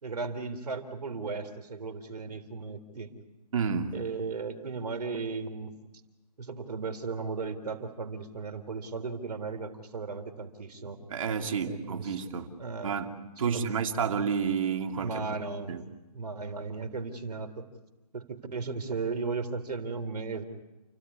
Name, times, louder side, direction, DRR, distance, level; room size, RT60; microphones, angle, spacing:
voice 1, 0.0-3.1 3.9-5.7 6.4-11.0 11.6-12.3 12.6-13.0 13.4-13.7 14.1-14.2 15.0-15.8 16.1-17.7 18.1-20.4, right 4 dB, 80° right, 3.7 m, -36 dB
voice 2, 3.5-3.9 11.1-12.5 12.8-13.1 13.4-15.2 15.7-15.8, right 6 dB, 55° right, 2.7 m, -30 dB
29.5 x 16.0 x 9.6 m
hypercardioid pair, 160°, 20 cm